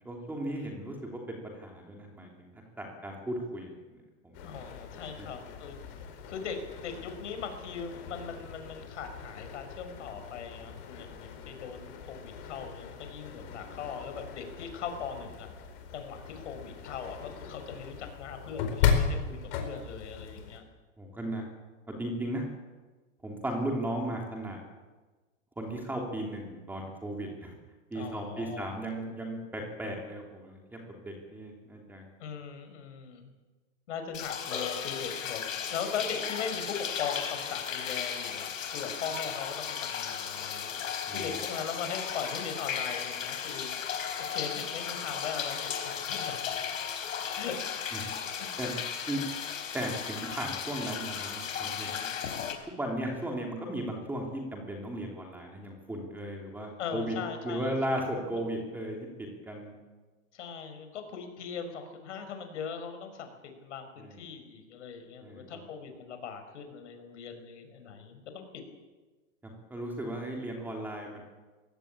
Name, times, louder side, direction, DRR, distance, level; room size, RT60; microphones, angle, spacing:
voice 1, 0.0-2.5 2.8-3.7 4.2-4.5 5.2-5.3 13.4-13.8 21.0-21.4 22.0-22.5 23.2-24.6 25.6-27.5 27.9-32.0 41.1-41.2 46.5-46.6 47.3-47.4 47.9-48.0 48.6-48.7 49.1-49.2 49.7-52.1 52.6-57.1 57.4-59.7 64.0-64.2 65.2-65.6 69.4-71.2, right 1 dB, 5° right, 1 dB, 3.1 m, -36 dB
sound 1, 4.3-20.6, left 7 dB, 45° left, 4.6 m, -37 dB
voice 2, 4.4-6.0 6.3-15.5 15.9-20.6 27.9-28.8 32.2-33.3 33.9-35.4 35.7-40.8 41.1-43.9 44.2-46.5 47.3-47.6 48.0-48.5 56.8-58.0 58.3-58.4 60.3-68.4, left 6 dB, 65° left, 7 dB, 5.5 m, -40 dB
sound 2, 34.1-52.5, left 8 dB, 80° left, 4.7 m, -35 dB
22.5 x 16.5 x 8.8 m, 1.3 s
hypercardioid pair, 160°, 39 cm